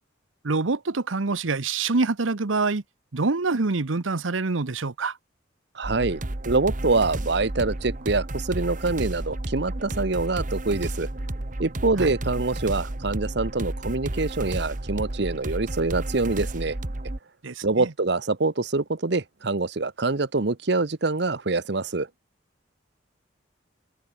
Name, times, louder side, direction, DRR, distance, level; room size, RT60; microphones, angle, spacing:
voice 1, 0.4-2.8 3.1-5.2 12.0-12.1 17.4-17.9, right 3 dB, 85° right, 1.0 m, -26 dB
voice 2, 5.7-6.2 6.4-11.1 11.6-16.8 17.6-22.1, right 3 dB, 60° right, 1.0 m, -25 dB
sound 1, 5.8-17.2, right 1 dB, 40° right, 1.3 m, -32 dB
head